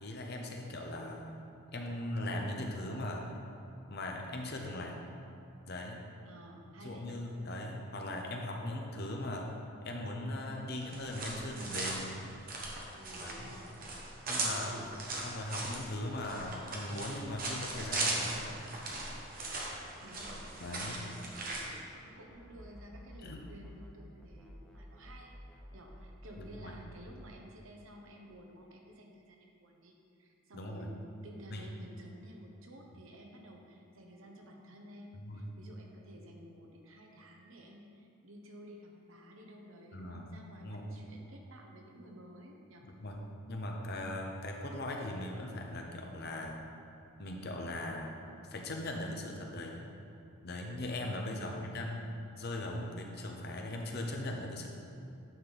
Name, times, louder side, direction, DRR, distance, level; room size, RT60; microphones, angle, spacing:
voice 1, 0.0-1.4 1.7-3.2 3.9-5.1 5.7-6.0 6.8-9.5 9.8-12.1 13.2-13.5 14.3-14.8 15.2-18.6 20.6-21.0 23.2-23.5 26.4-26.8 30.5-30.9 31.5-31.7 35.1-35.5 39.9-40.9 42.8-46.6 47.2-48.2 48.5-49.9 50.4-52.0 52.4-54.7, left 1 dB, 45° left, 1 dB, 0.8 m, -39 dB
voice 2, 6.3-7.2 12.9-13.8 14.3-14.9 20.0-20.5 20.8-25.3 25.7-42.9 51.2-52.1, equal, 65° right, 1 dB, 1.0 m, -53 dB
sound 1, 10.8-21.6, right 2 dB, 40° right, 1.1 m, -38 dB
sound 2, 22.3-24.0 24.2-27.3, equal, 5° left, 0.8 m, -52 dB
9.4 x 5.7 x 4.0 m, 2.7 s
head